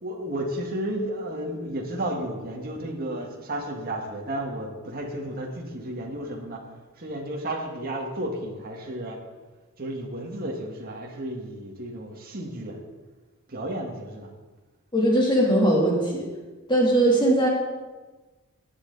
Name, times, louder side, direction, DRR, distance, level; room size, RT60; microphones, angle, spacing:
voice 1, 0.0-6.6 7.0-9.2 9.8-12.8 13.5-14.3, right 1 dB, 45° right, 0 dB, 1.8 m, -32 dB
voice 2, 14.9-16.3 16.7-17.5, right 1 dB, 20° left, -3 dB, 3.1 m, -20 dB
18.0 x 8.9 x 4.1 m, 1.2 s
head